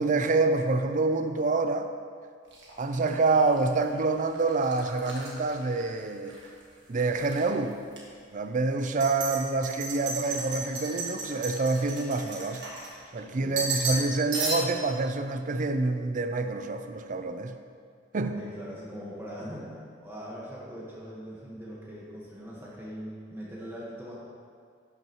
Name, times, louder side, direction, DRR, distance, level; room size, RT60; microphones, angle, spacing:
voice 1, 0.0-1.9 2.8-6.3 6.9-7.7 8.3-12.6 13.1-17.5 18.1-18.3, right 3 dB, 45° right, 8 dB, 0.5 m, -27 dB
sound 1, 2.5-6.5 6.8-7.4 7.9-8.0 8.8-13.2 13.6-14.1 14.3-14.9, right 3 dB, 75° right, 1.6 m, -35 dB
voice 2, 13.2-13.6 18.2-24.2, equal, 15° right, -6 dB, 1.4 m, -41 dB
11.5 x 6.0 x 3.0 m, 2.1 s
head